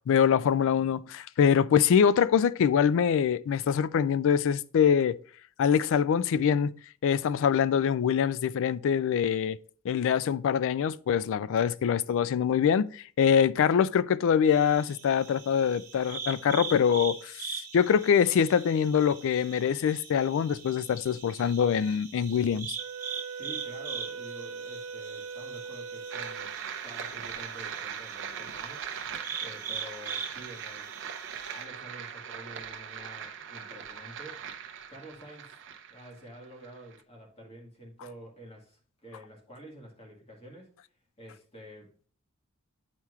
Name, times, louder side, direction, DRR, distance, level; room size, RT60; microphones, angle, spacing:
voice 1, 0.1-5.2 5.6-6.7 7.0-9.6 9.8-22.8, left 7 dB, 60° left, 0.3 m, -24 dB
sound 1, 14.5-31.6, right 7 dB, 40° right, 1.1 m, -42 dB
Wind instrument woodwind instrument, 22.8-26.6, right 5 dB, 80° right, 0.9 m, -40 dB
voice 2, 23.3-26.5 26.8-28.9 29.4-30.9 31.5-34.6 34.9-35.6 35.9-40.7 41.2-41.9, right 1 dB, 30° left, 1.7 m, -48 dB
sound 2, 26.1-37.0, right 7 dB, 60° right, 0.6 m, -40 dB
9.5 x 4.4 x 2.4 m
head